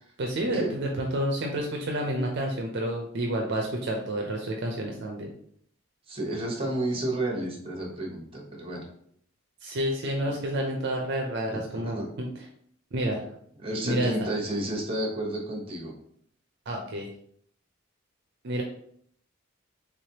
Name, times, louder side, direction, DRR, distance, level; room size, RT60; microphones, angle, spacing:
voice 1, 0.2-5.3 9.6-12.3 12.9-13.2 13.8-14.1 16.7-17.1 18.4-18.6, right 1 dB, 55° right, 1 dB, 0.5 m, -29 dB
voice 2, 6.1-8.8 11.5-12.1 13.6-15.9, right 1 dB, 25° right, -1 dB, 1.0 m, -31 dB
3.6 x 3.3 x 2.8 m, 0.65 s
head